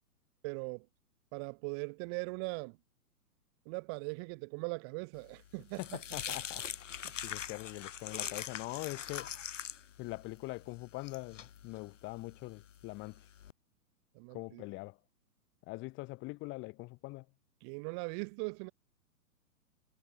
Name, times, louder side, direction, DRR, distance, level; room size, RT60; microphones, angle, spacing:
voice 1, 0.4-0.9 1.3-2.8 3.7-5.8 7.0-7.1 14.1-14.6 17.6-18.7, right 37 dB, 15° right, 0.7 m, -40 dB
sound 1, 5.2-13.5, left 9 dB, 55° left, 4.2 m, -43 dB
voice 2, 5.8-6.6 7.2-9.3 10.0-13.2 14.3-15.0 15.7-17.2, left 23 dB, 25° left, 5.2 m, -43 dB
figure-of-eight pair, 120°, 45 cm